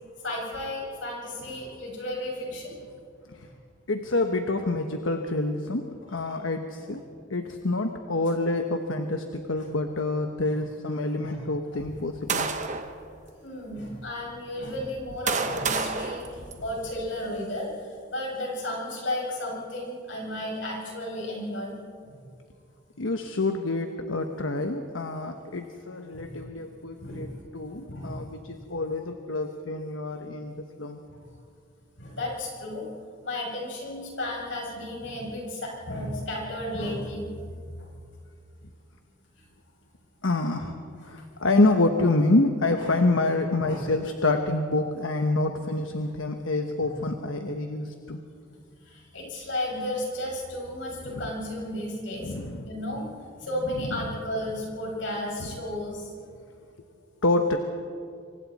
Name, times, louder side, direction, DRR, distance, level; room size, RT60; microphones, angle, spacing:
voice 1, 0.2-2.7 9.6-9.7 11.2-11.4 13.4-16.2 16.6-17.7 18.1-21.8 26.1-26.6 27.0-27.3 27.9-28.2 32.0-32.8 33.2-37.3 42.8-42.9 43.6-43.8 46.8-46.9 48.9-52.3 52.6-53.1 53.4-56.1, left 1 dB, 70° left, -2 dB, 6.7 m, -33 dB
voice 2, 3.9-5.8 6.1-7.0 7.3-12.5 23.0-31.0 40.2-40.7 41.1-48.2 51.0-51.3 52.2-52.7 53.8-54.1 55.4-55.5 57.2-57.6, left 2 dB, 90° left, 5 dB, 1.2 m, -27 dB
sound 1, 11.8-13.0 13.7-13.8 14.7-17.1, right 4 dB, 35° right, 1.2 m, -31 dB
27.0 x 24.5 x 4.2 m, 2.3 s
head